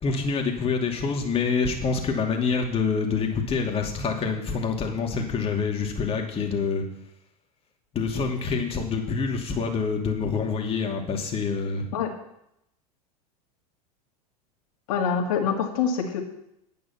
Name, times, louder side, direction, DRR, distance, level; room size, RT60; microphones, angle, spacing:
voice 1, 0.0-6.8 7.9-11.9, left 5 dB, 30° left, 2 dB, 2.5 m, -26 dB
voice 2, 14.9-16.2, left 6 dB, 65° left, 2 dB, 2.5 m, -25 dB
9.6 x 9.3 x 5.9 m, 0.79 s
hypercardioid pair, 90°, 20 cm